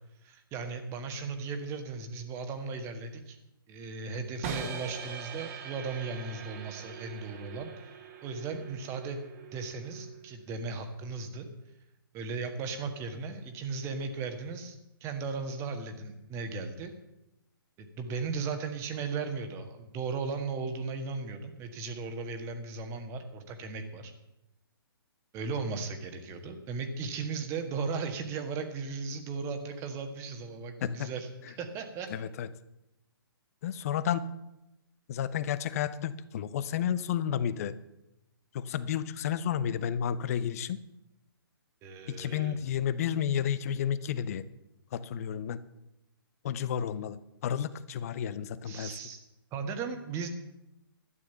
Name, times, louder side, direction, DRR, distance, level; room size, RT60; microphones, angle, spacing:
voice 1, 0.2-3.4 3.7-7.7 8.2-9.2 9.5-11.5 12.1-16.9 17.8-24.1 25.3-32.1 41.8-42.6 48.6-49.2 49.5-50.3, right 4 dB, 20° right, 7 dB, 1.6 m, -36 dB
sound 1, 4.4-10.4, right 6 dB, 35° right, 1.8 m, -42 dB
voice 2, 32.1-32.5 33.6-34.3 35.1-37.7 38.5-40.8 42.1-44.4 44.9-45.6 46.4-47.2 47.4-48.9, left 9 dB, 40° left, 16 dB, 0.7 m, -31 dB
12.5 x 9.5 x 6.9 m, 0.90 s
figure-of-eight pair, 130°, 13 cm